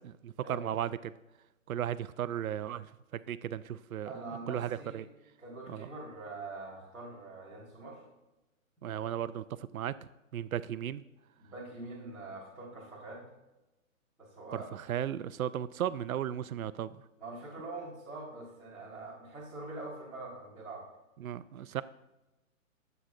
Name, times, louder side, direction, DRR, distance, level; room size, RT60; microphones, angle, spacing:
voice 1, 0.2-0.9 1.7-2.9 3.1-4.1 4.5-5.1 5.7-5.9 8.8-10.0 10.3-11.0 14.5-17.0 21.2-21.8, right 10 dB, 85° right, 15 dB, 0.6 m, -35 dB
voice 2, 4.0-5.0 5.4-8.0 11.4-13.2 14.2-14.7 17.2-20.8, right 2 dB, ahead, -17 dB, 1.6 m, -44 dB
23.0 x 8.0 x 2.5 m, 1.0 s
hypercardioid pair, 180°, 41 cm